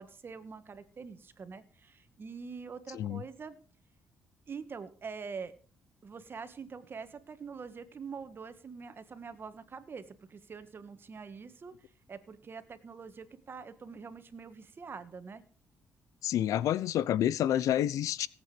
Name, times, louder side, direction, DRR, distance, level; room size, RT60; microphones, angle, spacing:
voice 1, 0.0-3.6 4.5-5.5 6.0-11.7 12.1-15.4, right 5 dB, 40° right, 1.7 m, -45 dB
voice 2, 16.2-18.3, left 11 dB, 75° left, 0.7 m, -28 dB
18.0 x 8.3 x 5.2 m
cardioid pair, 90°, 6 cm